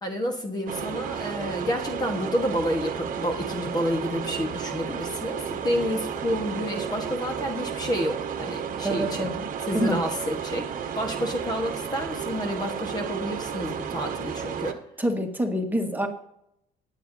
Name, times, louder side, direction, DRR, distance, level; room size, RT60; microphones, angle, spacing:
voice 1, 0.0-9.3 9.6-10.7 11.0-14.8, equal, 25° left, 3 dB, 1.4 m, -29 dB
sound 1, 0.7-14.7, right 7 dB, 50° right, 1.2 m, -32 dB
voice 2, 8.8-9.4 9.7-10.0 15.0-16.1, equal, 10° right, 3 dB, 1.6 m, -26 dB
22.5 x 8.3 x 2.7 m, 0.78 s
cardioid pair, 110°, 17 cm